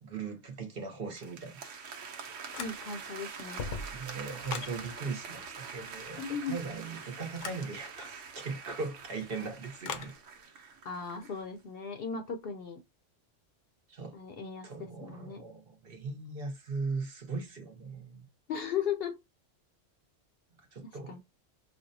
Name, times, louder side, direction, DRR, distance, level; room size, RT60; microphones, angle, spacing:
voice 1, 0.0-1.7 3.9-10.1 10.5-10.7 13.9-14.2 14.6-18.2 20.7-21.2, right 4 dB, 55° right, 1.0 m, -39 dB
sound 1, 1.1-11.4, right 5 dB, 80° right, 1.0 m, -45 dB
sound 2, 2.5-3.1 3.4-4.8 7.3-7.7 9.8-10.2, left 5 dB, 85° left, 1.0 m, -39 dB
voice 2, 2.6-3.6 6.2-6.6 10.8-12.8 14.1-14.7 15.0-15.4 18.5-19.2 21.1-21.2, left 6 dB, 60° left, 0.7 m, -36 dB
4.2 x 2.1 x 2.6 m
omnidirectional pair, 1.3 m